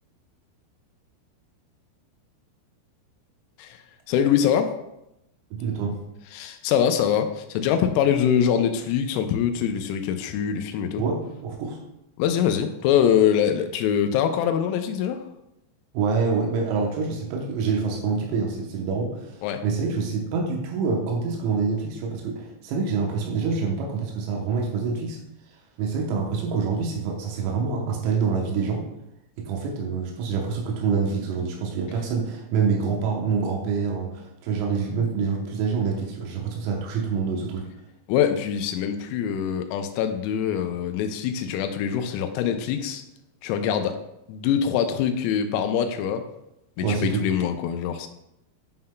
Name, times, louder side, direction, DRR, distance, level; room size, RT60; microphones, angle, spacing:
voice 1, 4.1-4.8 6.3-11.0 12.2-15.2 19.4-19.6 38.1-43.0 43.4-44.0 44.3-46.3 46.8-48.1, left 8 dB, 90° left, 7 dB, 3.4 m, -24 dB
voice 2, 5.5-6.0 11.0-11.8 15.9-25.2 25.8-28.8 29.4-37.7 46.8-47.3, right 5 dB, 85° right, -1 dB, 3.7 m, -26 dB
10.5 x 5.6 x 2.2 m, 0.85 s
omnidirectional pair, 6.0 m